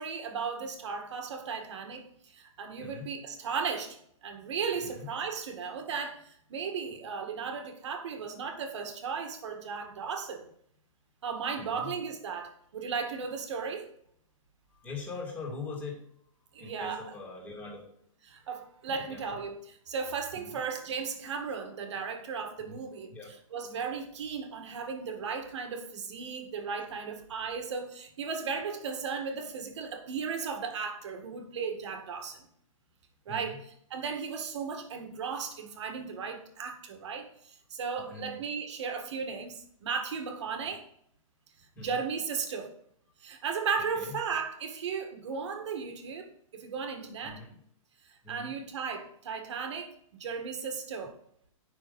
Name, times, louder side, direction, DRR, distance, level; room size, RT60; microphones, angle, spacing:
voice 1, 0.0-10.5 11.2-13.9 16.5-17.0 18.3-23.1 23.5-32.5 33.3-33.6 33.9-40.8 41.8-42.7 43.2-47.4 48.1-49.9 50.2-51.1, right 5 dB, 55° right, 2.0 m, -36 dB
voice 2, 2.8-3.1 4.8-5.1 11.6-11.9 14.7-16.0 16.6-17.9 19.0-19.4 20.3-20.6 22.6-22.8 23.1-23.3 33.3-33.6 38.0-38.4 41.7-42.0 43.9-44.2 47.2-47.6 48.2-48.5, left 4 dB, 10° left, 2.5 m, -42 dB
9.8 x 6.2 x 5.4 m
hypercardioid pair, 165°, 18 cm